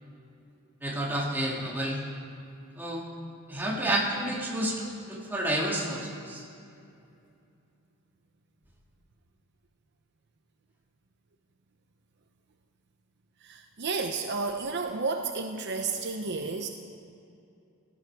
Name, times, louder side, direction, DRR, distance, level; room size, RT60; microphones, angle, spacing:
voice 1, 0.8-2.0 2.8-3.0 3.5-6.4, right 1 dB, 10° right, -3 dB, 2.2 m, -30 dB
voice 2, 13.4-16.7, right 4 dB, 55° right, 5 dB, 0.7 m, -31 dB
17.0 x 13.5 x 4.8 m, 2.6 s
head